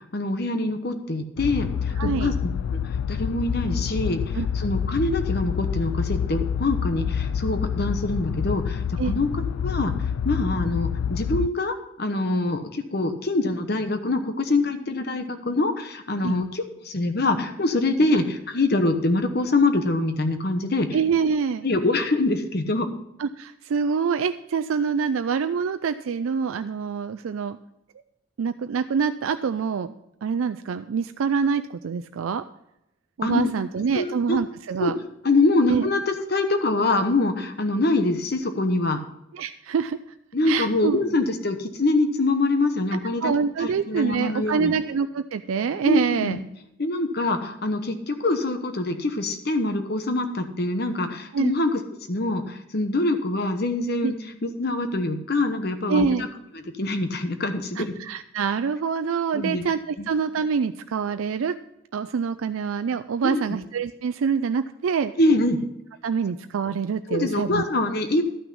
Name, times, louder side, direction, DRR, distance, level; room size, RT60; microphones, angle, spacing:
voice 1, 0.1-2.3 2.7-2.8 3.1-9.9 10.2-20.9 21.6-22.9 33.2-33.5 33.9-34.4 34.8-39.0 40.3-44.7 45.8-46.4 46.8-51.8 52.1-54.1 54.4-56.1 56.8-57.9 59.3-59.6 60.0-60.1 63.2-63.4 65.2-65.7 67.1-68.2, left 2 dB, 50° left, 8 dB, 1.0 m, -24 dB
sound 1, 1.4-11.5, left 7 dB, 90° left, 0.3 m, -27 dB
voice 2, 2.0-2.3 4.3-4.5 9.0-9.1 16.2-16.4 20.9-21.6 23.2-27.6 28.4-29.9 30.2-32.4 33.2-34.9 35.7-35.8 39.3-40.0 40.4-41.0 43.2-46.4 51.3-51.5 54.0-54.1 55.9-56.2 57.8-61.6 61.9-65.1 66.0-67.6, right 6 dB, 80° right, 9 dB, 0.4 m, -25 dB
12.0 x 5.9 x 5.4 m, 0.82 s
head